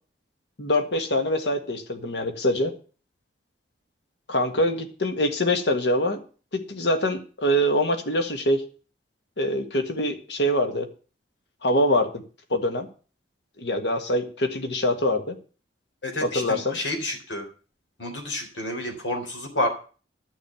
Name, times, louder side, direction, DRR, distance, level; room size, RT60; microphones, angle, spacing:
voice 1, 0.6-2.7 4.3-6.2 6.5-8.6 9.4-10.9 11.6-12.2 12.5-12.9 13.6-15.3 16.2-16.8, left 1 dB, 70° left, 7 dB, 1.7 m, -24 dB
voice 2, 16.0-17.5 18.0-19.7, left 1 dB, 90° left, 4 dB, 3.8 m, -29 dB
12.0 x 6.5 x 8.2 m, 0.38 s
head